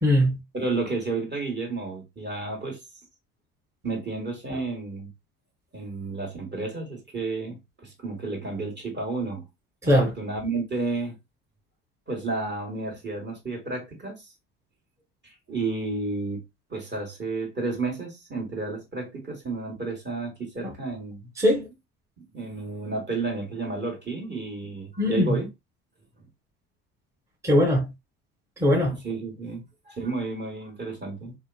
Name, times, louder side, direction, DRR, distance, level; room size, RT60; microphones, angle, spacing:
voice 1, 0.0-0.4 9.8-10.1 21.4-21.7 25.0-25.4 27.4-27.9 28.6-29.0, left 1 dB, 10° right, 0.9 m, -20 dB
voice 2, 0.5-2.8 3.8-5.1 5.7-9.4 9.8-11.2 12.1-14.3 15.2-16.4 16.7-21.3 22.2-25.5 28.9-31.3, right 3 dB, 30° right, 1.3 m, -31 dB
2.8 x 2.3 x 2.3 m
hypercardioid pair, 65°, 37 cm